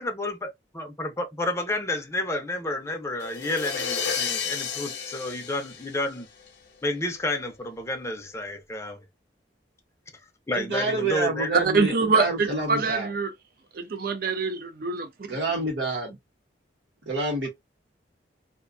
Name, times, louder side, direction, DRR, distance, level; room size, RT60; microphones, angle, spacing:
voice 1, 0.0-6.3 6.8-9.0 10.5-11.5, left 2 dB, 15° left, 0.5 m, -30 dB
sound 1, 3.2-6.5, left 7 dB, 75° left, 0.7 m, -31 dB
voice 2, 10.5-13.1 15.3-16.2 17.1-17.5, right 2 dB, 90° right, 0.9 m, -28 dB
voice 3, 11.5-13.3 13.7-15.1, right 4 dB, 55° right, 0.5 m, -24 dB
2.5 x 2.2 x 2.4 m
head